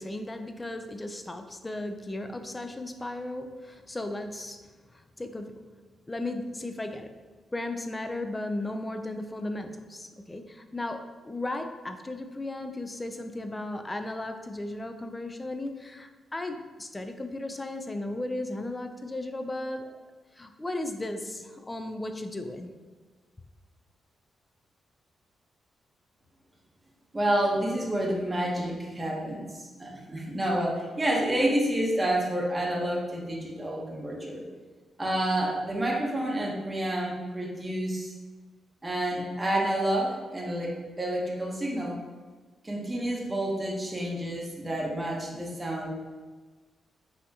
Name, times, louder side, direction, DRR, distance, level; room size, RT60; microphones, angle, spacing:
voice 1, 0.0-4.6 4.9-5.7 6.1-7.2 7.5-20.0 20.4-22.7, left 2 dB, 15° left, 7 dB, 0.3 m, -35 dB
voice 2, 27.1-29.5 29.8-34.4 35.0-38.1 38.8-42.0 42.6-45.9, right 1 dB, 20° right, -2 dB, 0.8 m, -29 dB
5.5 x 2.7 x 2.7 m, 1.4 s
cardioid pair, 115°, 0 cm